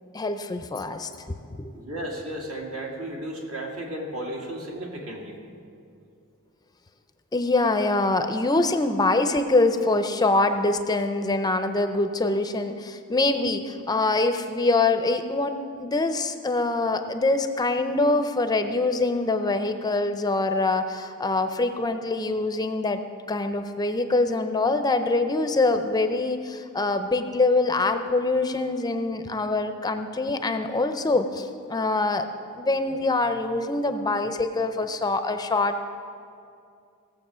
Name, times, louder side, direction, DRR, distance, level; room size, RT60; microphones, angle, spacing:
voice 1, 0.1-1.7 7.3-23.0 23.3-32.2 32.6-35.8, left 2 dB, 20° left, 8 dB, 0.5 m, -24 dB
voice 2, 1.7-5.4, right 1 dB, 70° right, -1 dB, 2.3 m, -34 dB
17.5 x 7.5 x 6.2 m, 2.5 s
head